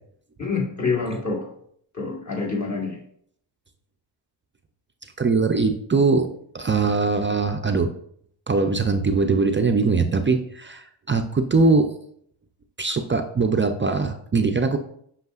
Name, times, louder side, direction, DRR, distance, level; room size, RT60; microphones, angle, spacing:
voice 1, 0.4-1.5 1.9-3.0, left 4 dB, 35° left, -2 dB, 1.4 m, -26 dB
voice 2, 5.2-6.3 6.5-7.9 8.5-11.9 12.8-14.8, right 4 dB, 25° right, 6 dB, 0.3 m, -21 dB
8.0 x 5.6 x 2.4 m, 0.66 s
wide cardioid pair, 135°, 47 cm